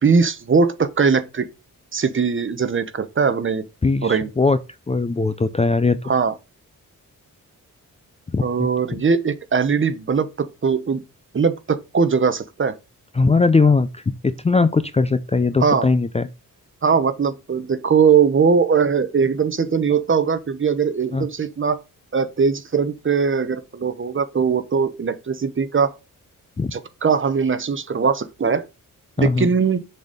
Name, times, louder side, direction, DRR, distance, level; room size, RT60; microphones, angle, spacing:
voice 1, 0.0-1.5 1.9-3.6 4.0-4.3 6.0-6.3 8.4-11.0 11.3-12.7 15.6-15.9 16.8-21.8 22.1-26.0 26.7-28.7 29.2-29.8, right 5 dB, 35° right, 0.9 m, -20 dB
voice 2, 3.8-4.6 4.9-6.0 8.3-9.0 13.2-16.3 21.1-21.3 26.6-26.7 29.2-29.5, left 3 dB, 20° left, 0.4 m, -19 dB
6.6 x 4.2 x 5.1 m
wide cardioid pair, 130°, 34 cm